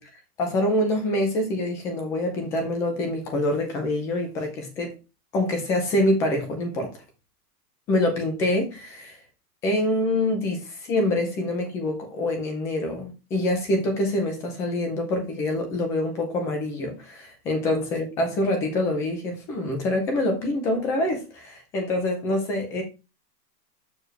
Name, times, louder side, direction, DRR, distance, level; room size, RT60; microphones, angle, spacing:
voice 1, 0.4-4.9 5.3-6.9 7.9-9.2 9.6-22.8, left 1 dB, 5° left, 0.3 m, -25 dB
6.9 x 6.2 x 3.2 m
hypercardioid pair, 145°, 49 cm